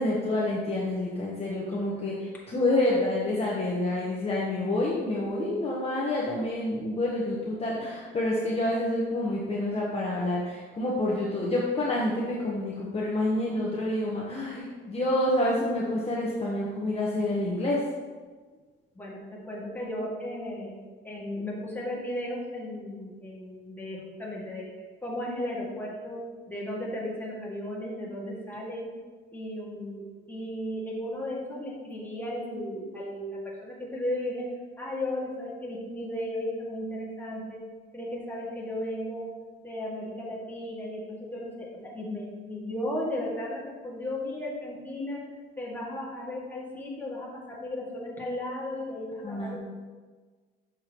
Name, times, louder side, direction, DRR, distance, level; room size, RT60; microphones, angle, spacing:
voice 1, 0.0-17.8 49.2-49.6, left 1 dB, 30° left, -4 dB, 1.1 m, -28 dB
voice 2, 18.9-20.7 21.0-24.6 25.0-28.9 29.3-34.5 34.8-37.6 37.9-39.3 39.6-45.2 45.6-49.6, left 1 dB, 10° left, -5 dB, 2.0 m, -35 dB
6.5 x 6.2 x 3.0 m, 1.4 s
cardioid pair, 90°, 20 cm